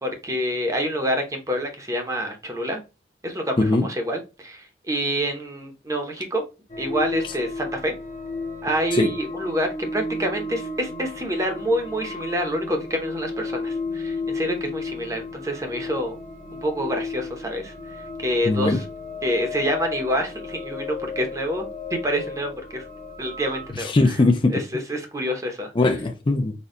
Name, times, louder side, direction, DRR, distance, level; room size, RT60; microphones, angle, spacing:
voice 1, 0.0-2.8 3.2-6.4 6.8-7.9 8.6-16.2 16.6-18.8 19.2-22.8 23.2-24.2 24.5-25.7, equal, 20° right, 0.7 m, -27 dB
sound 1, 6.7-23.7, left 3 dB, 45° left, 0.8 m, -33 dB
voice 2, 18.5-18.8 23.8-24.6 25.8-26.5, left 2 dB, 30° left, 0.4 m, -20 dB
4.2 x 2.2 x 3.6 m
head